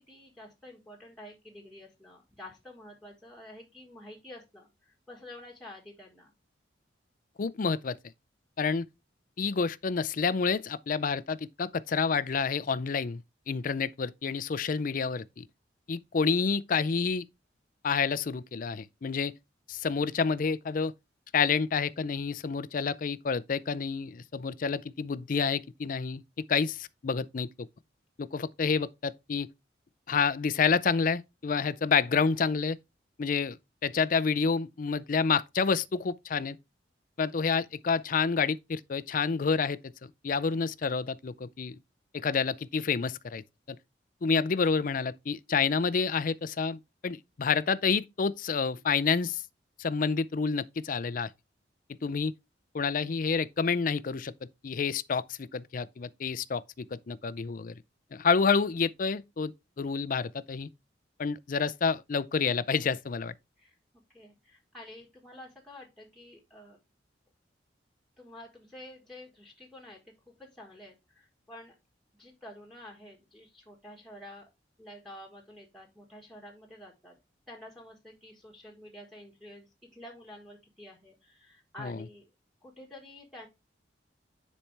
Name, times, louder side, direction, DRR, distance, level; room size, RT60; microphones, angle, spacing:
voice 1, 0.0-6.3 63.6-63.8 64.1-66.8 68.2-70.1 70.4-71.7 72.2-74.5 74.8-77.2 77.5-82.3 82.6-83.5, left 1 dB, ahead, 1.5 m, -49 dB
voice 2, 7.4-8.0 8.6-8.9 9.4-13.2 13.5-15.4 15.9-17.2 17.8-19.3 19.7-20.9 21.3-26.2 26.5-27.5 28.2-29.5 30.1-32.8 33.2-36.6 37.2-41.8 42.1-43.4 43.7-43.8 44.2-49.4 49.8-51.3 52.0-52.3 52.7-57.8 58.1-59.5 59.8-60.7 61.2-63.3 81.8-82.0, left 5 dB, 45° left, 0.4 m, -29 dB
10.0 x 4.3 x 3.3 m
head